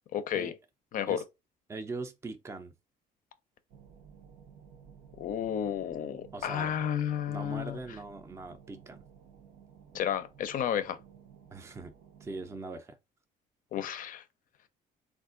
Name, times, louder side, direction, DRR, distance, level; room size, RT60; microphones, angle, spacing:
voice 1, 0.1-0.6 0.9-1.2 5.2-7.8 9.9-11.0 13.7-14.2, left 9 dB, 55° left, 0.5 m, -32 dB
voice 2, 1.7-2.7 6.3-6.7 7.3-9.0 11.5-11.9 12.2-13.0, right 3 dB, 15° right, 0.4 m, -41 dB
sound 1, 3.7-12.6, right 7 dB, 90° right, 0.8 m, -55 dB
3.5 x 2.5 x 2.5 m
cardioid pair, 110°, 17 cm